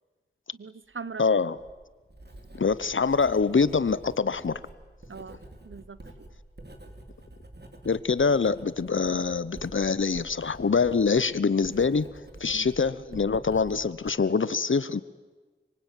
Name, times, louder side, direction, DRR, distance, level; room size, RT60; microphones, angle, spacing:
voice 1, 0.6-1.4 5.1-5.4 5.6-6.3 12.5-12.7, right 5 dB, 80° right, 16 dB, 1.0 m, -41 dB
voice 2, 1.2-1.6 2.6-4.6 7.8-12.1 12.4-15.0, left 5 dB, 75° left, 17 dB, 0.8 m, -24 dB
Writing, 1.3-14.1, right 1 dB, 55° right, 3.3 m, -48 dB
25.5 x 23.0 x 9.1 m, 1.3 s
wide cardioid pair, 50°, 20 cm